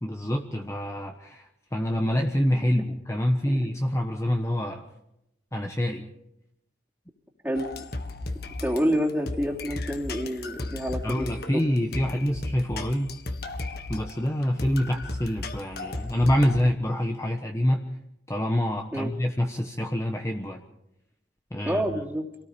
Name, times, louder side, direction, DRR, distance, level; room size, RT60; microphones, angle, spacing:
voice 1, 0.0-1.4 1.7-4.8 5.5-6.1 11.0-13.1 13.9-17.9 18.3-20.6 21.5-21.8, equal, 15° left, 3 dB, 1.2 m, -26 dB
sound 1, 7.5-16.6, left 2 dB, 55° left, 1.8 m, -35 dB
voice 2, 8.6-11.6 18.9-19.1 21.6-22.3, equal, 10° right, -1 dB, 3.0 m, -28 dB
27.0 x 18.5 x 5.3 m, 0.83 s
head